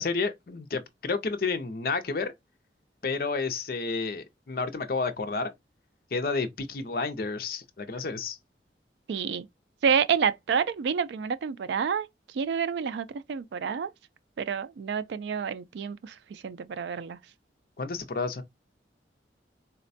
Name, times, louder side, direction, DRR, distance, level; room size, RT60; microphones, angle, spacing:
voice 1, 0.0-2.3 3.0-5.5 6.1-8.4 17.8-18.4, left 4 dB, 55° left, 0.5 m, -30 dB
voice 2, 9.1-9.5 9.8-13.9 14.4-17.2, right 6 dB, 75° right, 0.3 m, -29 dB
4.1 x 2.1 x 2.6 m
head